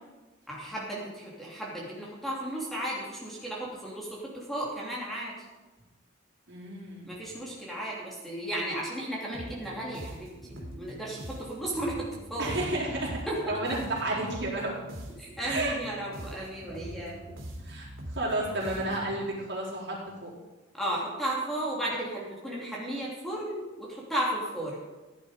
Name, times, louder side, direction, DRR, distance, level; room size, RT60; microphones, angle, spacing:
voice 1, 0.5-5.3 7.1-12.5 13.3-13.5 15.2-17.4 20.7-24.8, right 1 dB, ahead, -5 dB, 3.0 m, -34 dB
voice 2, 6.5-7.1 12.4-14.7 15.4-15.7 17.6-20.3, right 2 dB, 60° right, -5 dB, 4.6 m, -32 dB
sound 1, 9.3-19.2, right 1 dB, 80° right, 3.4 m, -43 dB
16.5 x 10.5 x 5.1 m, 1.2 s
head